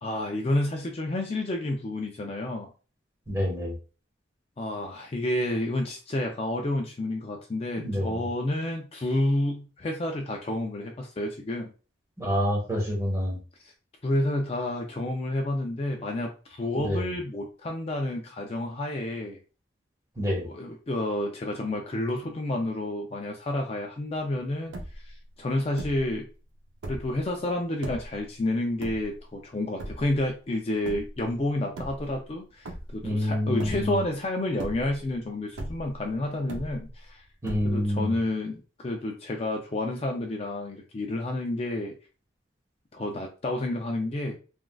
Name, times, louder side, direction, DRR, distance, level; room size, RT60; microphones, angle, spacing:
voice 1, 0.0-2.7 4.6-11.7 14.0-19.4 20.4-24.7 25.0-26.3 26.9-37.2 37.6-41.9 42.9-44.4, left 1 dB, 35° left, 2 dB, 0.4 m, -30 dB
voice 2, 3.3-3.7 7.8-8.3 12.2-13.4 16.8-17.1 20.2-20.5 33.0-34.0 37.4-38.2, equal, 15° right, -2 dB, 1.1 m, -27 dB
sound 1, 24.3-24.4 24.5-25.2 25.8-26.2 26.7-27.2 27.8-28.2 28.8-29.4 29.8-30.3 30.8-31.2 31.7-32.4 32.7-33.2 33.6-34.1 34.5-35.1 35.6-36.1 36.5-37.1 37.4-38.0, right 1 dB, 85° right, 0.6 m, -38 dB
3.4 x 2.4 x 2.3 m, 0.35 s
head